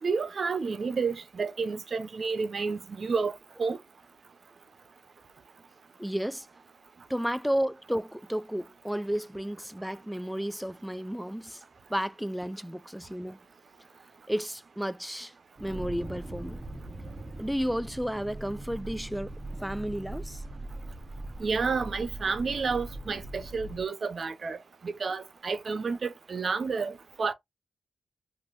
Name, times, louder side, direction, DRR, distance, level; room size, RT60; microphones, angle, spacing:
voice 1, 0.0-3.3 3.6-3.8 21.4-24.6 24.8-27.3, right 5 dB, 65° right, 0.6 m, -30 dB
voice 2, 6.0-6.5 7.1-11.6 11.9-13.4 14.3-15.3 15.6-16.6 17.4-19.3 19.6-20.4, equal, ahead, 0.3 m, -32 dB
sound 1, 15.6-23.8, right 1 dB, 30° right, 0.7 m, -41 dB
3.3 x 2.6 x 2.5 m
cardioid pair, 55°, 0 cm